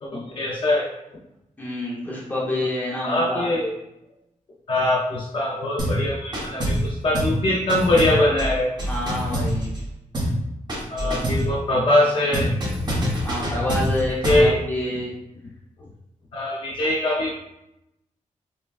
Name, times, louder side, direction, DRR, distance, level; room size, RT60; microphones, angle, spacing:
voice 1, 0.0-1.2 3.0-3.7 4.7-8.7 10.9-12.5 14.2-14.6 16.3-17.3, left 1 dB, 40° left, -4 dB, 0.5 m, -22 dB
voice 2, 1.6-3.5 8.8-9.7 13.2-15.1, left 1 dB, 15° left, -5 dB, 0.9 m, -28 dB
sound 1, 5.8-6.0 6.3-6.9 7.1-7.4 7.7-9.9 10.1-10.4 10.7-11.5 12.3-14.5, equal, 35° right, 1.0 m, -25 dB
5.3 x 2.2 x 2.4 m, 0.87 s
wide cardioid pair, 160°, 13 cm